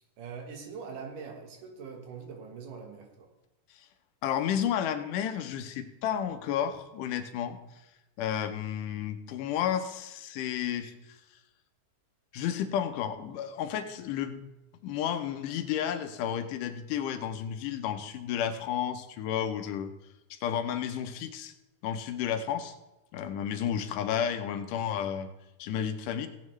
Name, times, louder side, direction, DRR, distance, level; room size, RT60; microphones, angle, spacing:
voice 1, 0.0-3.3, right 5 dB, 80° right, 3 dB, 3.0 m, -43 dB
voice 2, 4.2-7.6 8.2-10.9 12.3-14.4 14.8-19.9 20.3-21.5 21.8-22.8 23.1-25.3 25.6-26.3, left 9 dB, 90° left, 8 dB, 2.4 m, -32 dB
16.5 x 9.4 x 3.2 m, 0.98 s
omnidirectional pair, 3.6 m